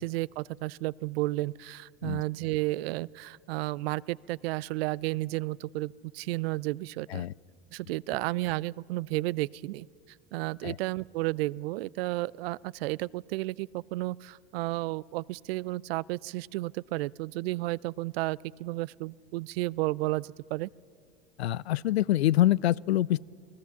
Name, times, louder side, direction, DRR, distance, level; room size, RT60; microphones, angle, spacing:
voice 1, 0.0-7.3 7.7-9.9 10.3-20.7, right 19 dB, 70° right, 23 dB, 0.5 m, -32 dB
voice 2, 21.4-23.2, left 13 dB, 90° left, 22 dB, 0.5 m, -25 dB
29.5 x 19.0 x 7.1 m, 2.2 s
hypercardioid pair, 85°, 31 cm